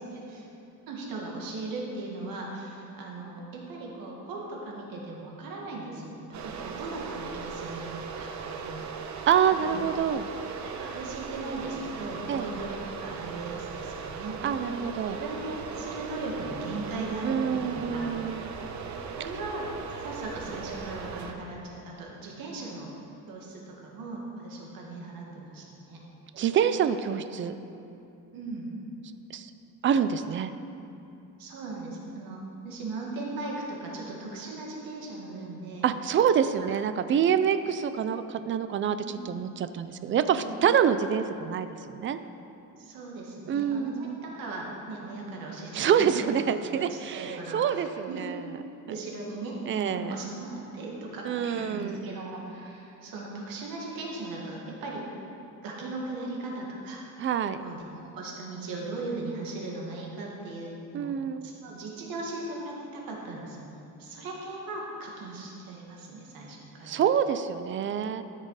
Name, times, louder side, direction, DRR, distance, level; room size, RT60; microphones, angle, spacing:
voice 1, 0.1-0.5 0.9-8.8 9.5-9.9 10.6-14.5 15.1-18.1 19.2-19.7 20.0-22.9 23.3-26.0 28.3-28.7 31.4-35.9 36.6-36.7 39.1-39.2 40.3-40.6 42.8-43.9 44.2-46.3 46.7-48.2 48.9-55.0 55.6-57.0 57.6-61.1 61.4-67.0, right 2 dB, 90° right, -2 dB, 2.0 m, -38 dB
sound 1, 6.3-21.3, right 5 dB, 55° right, 0.9 m, -38 dB
voice 2, 9.3-10.3 12.3-12.5 14.4-15.2 17.2-18.5 26.3-27.5 29.3-29.5 29.8-30.5 35.8-42.2 43.5-44.2 45.7-48.4 49.7-50.2 51.2-52.0 57.2-57.6 60.9-61.5 66.8-68.2, right 8 dB, 35° right, 11 dB, 0.4 m, -26 dB
13.0 x 6.7 x 4.8 m, 2.8 s
cardioid pair, 165°, 34 cm